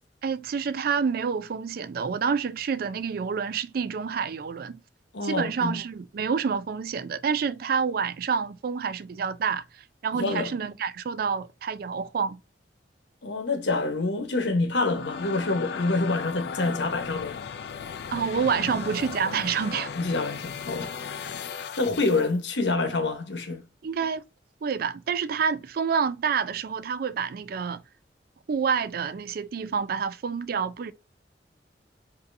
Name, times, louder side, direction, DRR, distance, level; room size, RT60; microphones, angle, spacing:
voice 1, 0.2-4.8 5.2-9.6 10.0-12.4 18.1-19.9 23.8-24.2 24.6-27.8 28.5-30.9, right 6 dB, 55° right, 0.4 m, -28 dB
voice 2, 5.1-5.7 10.1-10.5 13.2-17.4 19.9-20.9 21.8-23.6, left 3 dB, 80° left, 0.9 m, -27 dB
sound 1, 14.6-22.3, left 6 dB, 65° left, 0.4 m, -36 dB
5.2 x 2.7 x 2.6 m
head